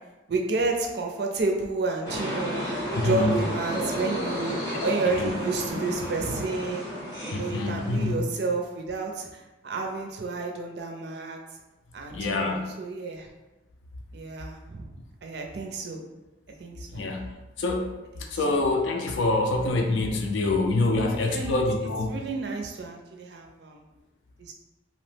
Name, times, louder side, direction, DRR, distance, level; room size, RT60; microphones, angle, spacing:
voice 1, 0.3-2.7 3.0-6.9 7.2-11.4 11.9-13.3 14.1-15.0 15.2-16.0 16.6-17.1 18.2-18.3 21.2-21.6 22.1-23.8 24.4-24.5, right 3 dB, 60° right, 2 dB, 0.4 m, -30 dB
sound 1, 2.0-8.1, equal, 15° left, 0.7 m, -32 dB
voice 2, 3.0-3.4 4.7-5.3 7.3-8.2 12.1-12.7 16.9-17.3 17.6-17.9 18.3-22.2, left 2 dB, 80° left, 3 dB, 0.4 m, -26 dB
2.8 x 2.0 x 3.2 m, 1.1 s
head